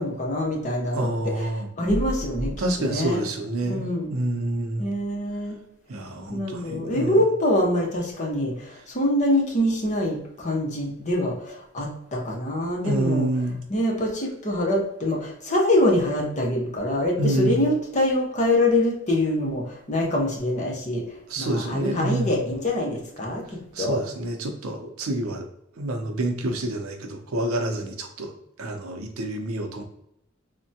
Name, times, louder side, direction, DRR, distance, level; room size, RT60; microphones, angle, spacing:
voice 1, 0.0-1.5 1.8-2.5 2.8-3.2 3.6-4.1 4.8-5.6 6.3-13.3 13.7-21.0 21.4-24.0, left 1 dB, 35° left, -1 dB, 0.7 m, -24 dB
voice 2, 0.9-1.7 2.6-4.9 5.9-7.2 12.8-13.6 17.2-17.6 21.3-22.3 23.8-25.4 25.8-28.3 28.6-29.8, right 1 dB, 85° right, 5 dB, 0.6 m, -28 dB
3.3 x 2.1 x 2.7 m, 0.77 s
head